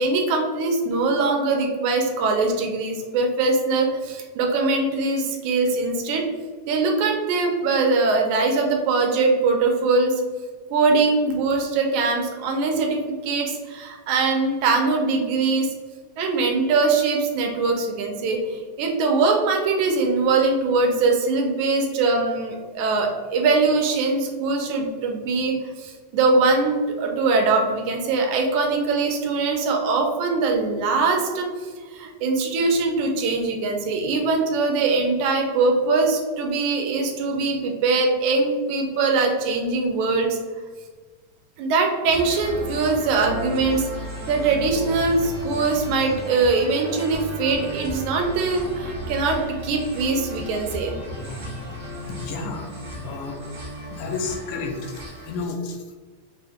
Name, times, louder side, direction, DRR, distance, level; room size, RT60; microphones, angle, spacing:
voice 1, 0.0-6.3 6.7-10.2 10.7-15.7 16.2-40.4 41.6-51.0 51.4-51.6 53.0-53.2, right 3 dB, 80° right, 2 dB, 2.0 m, -22 dB
sound 1, 42.0-55.4, equal, 50° right, 0.9 m, -35 dB
voice 2, 52.0-52.7 53.0-53.4 53.9-55.8, left 4 dB, 90° left, 3 dB, 2.1 m, -31 dB
5.9 x 2.2 x 3.4 m, 1.4 s
omnidirectional pair, 3.5 m